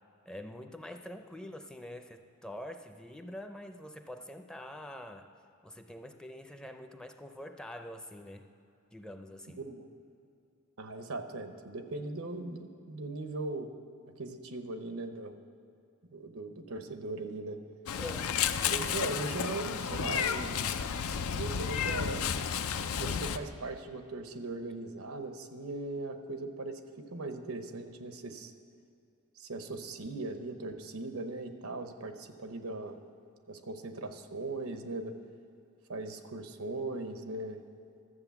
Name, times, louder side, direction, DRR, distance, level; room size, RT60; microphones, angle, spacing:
voice 1, 0.3-5.3 5.6-8.4 8.9-9.6 18.0-18.5, left 1 dB, 5° left, 6 dB, 0.5 m, -45 dB
voice 2, 9.5-9.9 10.8-13.7 14.2-15.3 16.1-17.6 18.6-20.5 21.3-22.3 22.9-28.5 29.4-33.0 33.5-35.1 35.9-37.6, right 2 dB, 90° right, 8 dB, 0.9 m, -39 dB
Meow, 17.9-23.4, left 7 dB, 85° left, 0.5 m, -32 dB
13.0 x 7.5 x 7.0 m, 2.6 s
head